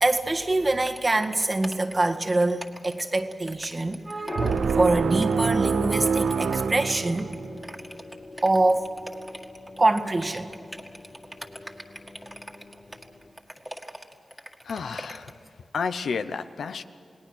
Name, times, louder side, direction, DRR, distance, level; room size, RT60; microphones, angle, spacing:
voice 1, 0.0-7.3 8.4-8.9 9.8-10.5, right 2 dB, 40° right, 5 dB, 1.8 m, -24 dB
sound 1, 0.8-15.5, equal, 10° right, 2.0 m, -43 dB
sound 2, 4.3-13.3, left 2 dB, 45° left, 2.0 m, -42 dB
sound 3, 4.4-7.7, right 5 dB, 85° right, 0.6 m, -26 dB
voice 2, 14.6-15.3 15.7-16.8, left 5 dB, 90° left, 10 dB, 0.8 m, -31 dB
28.5 x 18.5 x 6.2 m, 2.6 s
cardioid pair, 50°, 0 cm